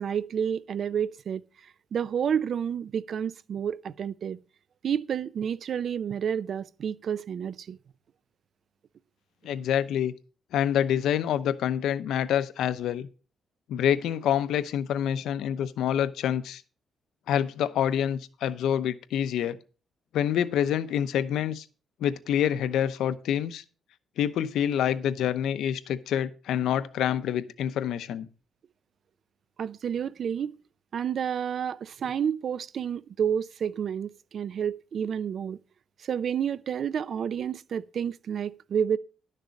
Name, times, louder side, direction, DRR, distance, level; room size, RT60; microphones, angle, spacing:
voice 1, 0.0-4.4 4.8-7.8 29.6-30.5 30.9-35.6 36.0-39.0, right 8 dB, 55° right, 0.5 m, -30 dB
voice 2, 9.4-10.1 10.5-13.1 13.7-16.6 17.3-19.6 20.1-21.6 22.0-23.6 24.2-28.3, left 9 dB, 85° left, 0.8 m, -27 dB
11.5 x 6.6 x 5.3 m
cardioid pair, 125°, 0 cm